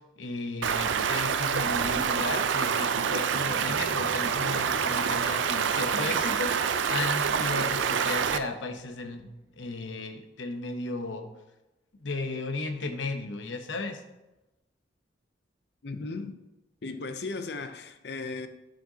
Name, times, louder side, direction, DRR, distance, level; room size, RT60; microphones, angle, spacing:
voice 1, 0.2-11.3 12.0-14.0, left 3 dB, 85° left, 0.8 m, -35 dB
Stream, 0.6-8.4, right 7 dB, 80° right, 0.4 m, -27 dB
sound 1, 3.2-9.8, right 1 dB, 15° right, 0.5 m, -49 dB
voice 2, 15.8-16.4 16.8-18.5, left 3 dB, 60° left, 0.6 m, -36 dB
11.5 x 5.3 x 2.8 m
head